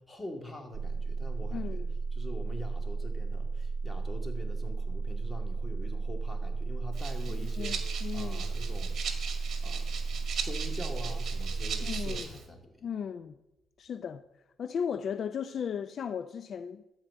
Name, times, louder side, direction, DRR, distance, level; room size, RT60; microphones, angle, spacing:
voice 1, 0.0-1.8 2.1-9.0 9.6-10.0 10.4-12.7, left 2 dB, 20° left, 2.3 m, -44 dB
sound 1, 0.7-12.2, right 4 dB, 35° right, 0.5 m, -34 dB
voice 2, 1.5-1.9 7.3-8.4 11.8-12.3 12.8-13.3 13.8-14.2 14.6-16.8, left 7 dB, 55° left, 0.4 m, -36 dB
Rattle (instrument), 6.9-12.5, right 6 dB, 60° right, 1.9 m, -39 dB
13.0 x 4.8 x 8.4 m
cardioid pair, 90°, 0 cm